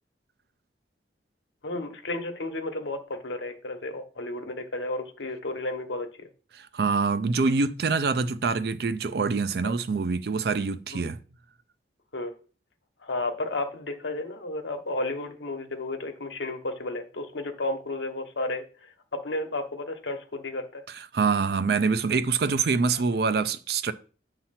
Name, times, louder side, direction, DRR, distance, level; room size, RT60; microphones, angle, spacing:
voice 1, 1.6-6.3 9.6-9.7 10.9-11.0 12.1-12.3 13.0-20.8, left 2 dB, 80° left, 1.1 m, -33 dB
voice 2, 6.5-11.2 20.9-23.9, right 4 dB, 55° right, 0.4 m, -25 dB
7.6 x 2.9 x 5.7 m
head